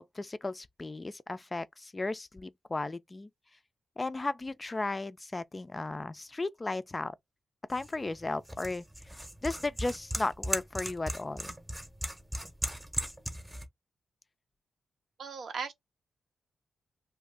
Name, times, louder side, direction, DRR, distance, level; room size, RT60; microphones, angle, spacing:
voice 1, 0.0-3.3 4.0-7.1 7.7-11.6, left 2 dB, 30° left, 0.3 m, -35 dB
sound 1, 7.7-13.6, equal, 15° right, 0.8 m, -38 dB
voice 2, 15.2-15.7, right 5 dB, 75° right, 0.6 m, -37 dB
2.5 x 2.2 x 3.4 m
cardioid pair, 60°, 0 cm